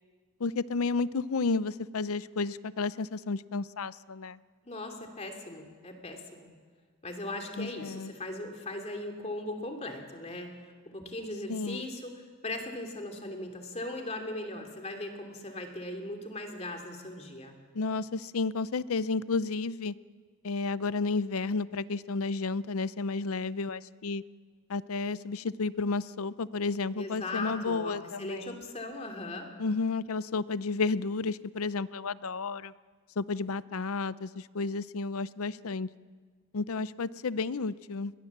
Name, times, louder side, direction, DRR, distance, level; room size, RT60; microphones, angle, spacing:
voice 1, 0.4-4.4 7.6-8.1 11.5-11.8 17.7-19.9 20.4-24.2 24.7-28.6 29.6-32.7 33.2-35.9 36.5-38.1, left 4 dB, 80° left, 17 dB, 0.6 m, -32 dB
voice 2, 4.6-6.5 7.0-10.5 10.9-17.6 27.0-29.5, left 2 dB, 30° left, 3 dB, 2.7 m, -39 dB
21.0 x 21.0 x 7.3 m, 1.5 s
head